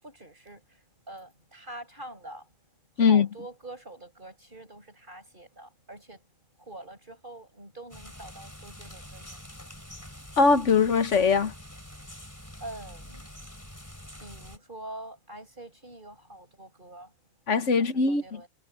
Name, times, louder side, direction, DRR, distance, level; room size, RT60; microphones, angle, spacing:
voice 1, 0.0-2.5 3.0-6.2 6.6-9.7 12.6-13.4 14.2-17.1 17.8-18.5, right 1 dB, 45° right, 7.8 m, -45 dB
sound 1, 7.9-14.6, left 1 dB, 15° left, 3.7 m, -46 dB
voice 2, 10.4-11.5 17.5-18.4, left 5 dB, 85° left, 1.6 m, -21 dB
omnidirectional pair, 1.2 m